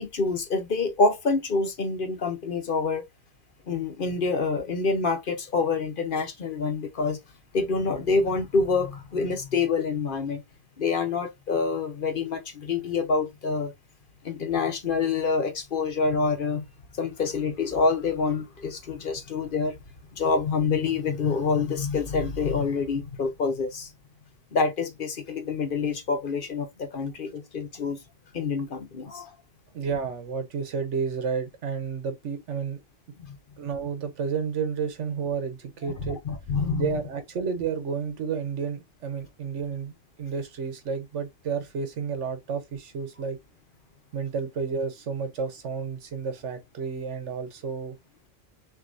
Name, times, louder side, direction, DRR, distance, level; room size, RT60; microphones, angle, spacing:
voice 1, 0.0-3.0 3.7-7.2 7.5-10.4 10.8-13.7 14.2-16.6 16.9-19.8 20.2-23.9 24.5-28.0 28.3-29.3 33.3-33.4 35.8-36.9, left 4 dB, 50° left, 0.9 m, -27 dB
voice 2, 29.7-32.8 33.6-36.2 36.7-39.9 40.2-43.4 44.1-48.0, right 6 dB, 85° right, 1.3 m, -31 dB
6.0 x 2.8 x 2.5 m
omnidirectional pair, 1.2 m